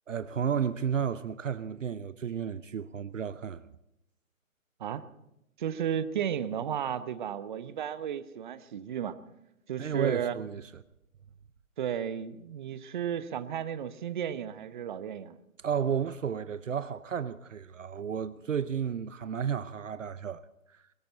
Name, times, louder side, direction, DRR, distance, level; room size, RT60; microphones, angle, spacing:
voice 1, 0.1-3.7 9.8-10.6 15.6-20.4, right 7 dB, 65° right, 0.8 m, -32 dB
voice 2, 5.6-9.2 9.7-10.3 11.8-15.4, right 9 dB, 35° right, 0.9 m, -33 dB
23.0 x 14.5 x 4.0 m
figure-of-eight pair, 140°, 42 cm